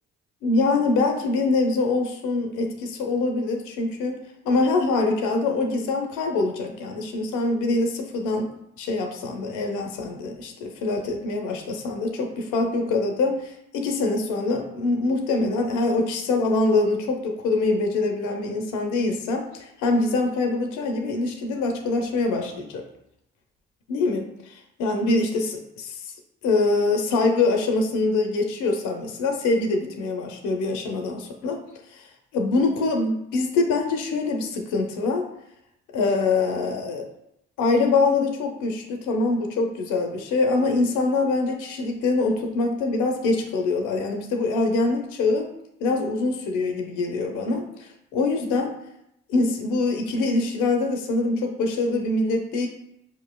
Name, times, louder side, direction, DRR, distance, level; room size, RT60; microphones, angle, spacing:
voice 1, 0.4-4.2 4.4-22.8 23.9-26.1 26.4-31.6 31.9-32.0 32.3-35.2 35.9-37.1 37.6-45.5 45.8-48.7 49.3-52.7, left 3 dB, 85° left, 4 dB, 0.5 m, -24 dB
4.8 x 3.0 x 2.2 m, 0.79 s
hypercardioid pair, 45°, 30 cm